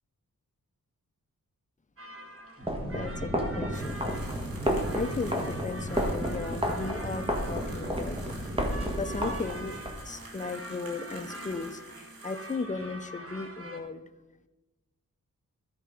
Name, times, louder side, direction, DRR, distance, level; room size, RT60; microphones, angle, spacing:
sound 1, 2.0-13.8, right 1 dB, 40° right, 1.3 m, -45 dB
sound 2, 2.6-9.9, equal, 15° right, 1.5 m, -31 dB
voice 1, 2.8-3.8 4.9-9.8 10.1-11.9 12.2-14.0, left 3 dB, 20° left, 10 dB, 0.6 m, -36 dB
sound 3, 3.7-12.7, right 3 dB, 85° right, 2.0 m, -49 dB
13.5 x 5.0 x 5.0 m, 1.1 s
wide cardioid pair, 90°, 34 cm